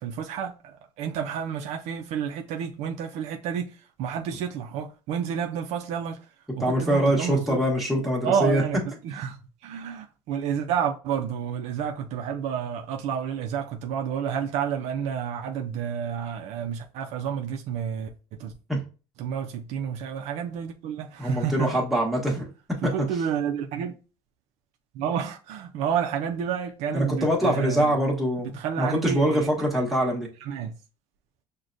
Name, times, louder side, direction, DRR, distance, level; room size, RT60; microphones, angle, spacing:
voice 1, 0.0-6.3 6.6-7.6 8.2-18.1 18.4-18.5 19.2-21.8 22.8-23.9 24.9-28.0 28.4-29.5 30.4-30.7, right 8 dB, 55° right, 0.4 m, -30 dB
voice 2, 6.6-8.6 18.7-18.8 21.2-22.5 22.8-22.9 26.9-30.3, equal, ahead, 1.1 m, -24 dB
6.2 x 2.2 x 2.5 m
cardioid pair, 145°, 14 cm